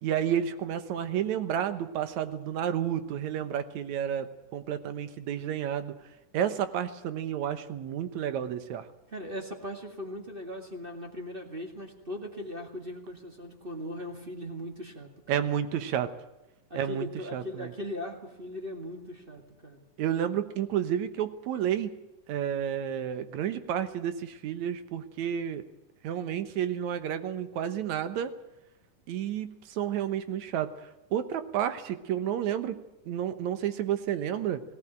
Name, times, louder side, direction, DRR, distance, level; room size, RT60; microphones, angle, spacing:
voice 1, 0.0-6.0 6.3-8.9 15.3-16.1 16.7-17.7 20.0-21.9 22.3-25.6 26.0-28.3 29.1-32.8 33.1-34.6, right 9 dB, 70° right, 11 dB, 2.3 m, -31 dB
voice 2, 9.1-15.5 16.7-19.8, left 1 dB, 20° right, 3 dB, 1.9 m, -39 dB
18.0 x 17.5 x 8.9 m, 0.95 s
omnidirectional pair, 3.6 m